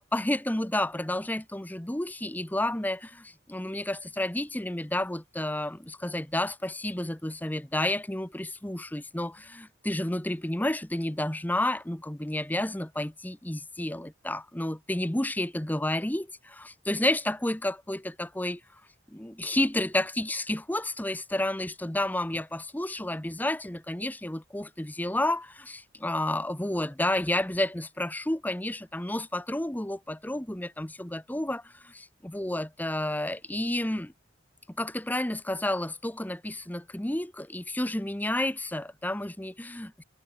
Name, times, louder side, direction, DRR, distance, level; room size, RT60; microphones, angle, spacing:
voice 1, 0.0-18.6 19.1-34.1 34.7-40.0, left 1 dB, 10° left, 0.8 m, -31 dB
head